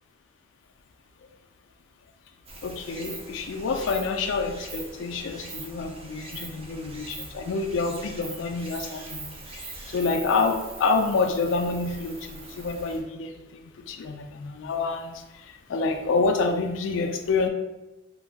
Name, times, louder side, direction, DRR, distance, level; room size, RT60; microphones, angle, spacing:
Stream, 2.4-13.0, right 2 dB, 30° right, 0.4 m, -42 dB
voice 1, 2.6-17.5, left 4 dB, 70° left, 5 dB, 0.3 m, -28 dB
2.6 x 2.3 x 3.3 m, 0.99 s
head